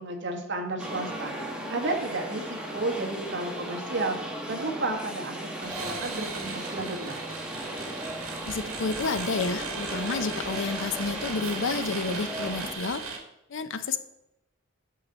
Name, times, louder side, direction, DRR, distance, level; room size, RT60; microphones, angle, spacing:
voice 1, 0.0-1.3 1.7-4.2 4.5-7.2, right 2 dB, 60° right, 2 dB, 1.4 m, -32 dB
sound 1, 0.8-12.7, right 1 dB, 5° right, 1.2 m, -36 dB
sound 2, 5.6-13.2, right 5 dB, 80° right, 1.7 m, -38 dB
voice 2, 8.5-13.0 13.5-14.0, left 4 dB, 65° left, 11 dB, 0.6 m, -30 dB
8.4 x 6.6 x 4.1 m, 0.87 s
head